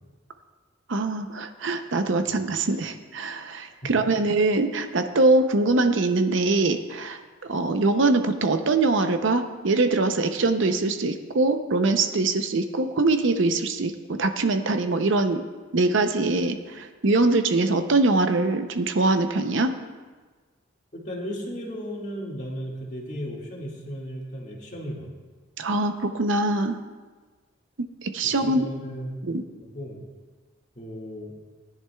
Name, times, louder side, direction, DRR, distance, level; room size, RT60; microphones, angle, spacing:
voice 1, 0.9-7.2 7.5-13.9 14.2-15.4 15.7-19.7 25.6-26.8 28.0-28.6 29.3-29.4, right 2 dB, 65° right, 8 dB, 0.7 m, -23 dB
voice 2, 20.9-25.1 28.2-29.2 29.6-30.1 30.8-31.3, equal, 35° left, -3 dB, 2.0 m, -35 dB
19.0 x 10.5 x 2.3 m, 1.3 s
head